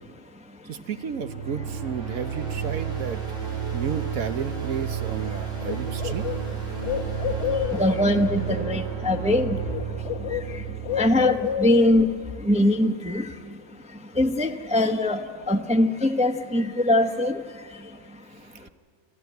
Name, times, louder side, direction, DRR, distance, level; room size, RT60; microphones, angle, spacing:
voice 1, 0.6-3.2 3.7-6.2, right 7 dB, 85° right, 10 dB, 1.5 m, -32 dB
sound 1, 1.0-12.0, right 8 dB, 45° right, 4.2 m, -32 dB
Bird, 5.2-5.3 5.6-8.1 9.2-9.4 9.7-12.1, left 9 dB, 60° left, 1.1 m, -30 dB
voice 2, 6.8-18.7, left 1 dB, 5° right, 6 dB, 0.7 m, -24 dB
26.0 x 14.0 x 9.3 m, 2.1 s
omnidirectional pair, 1.4 m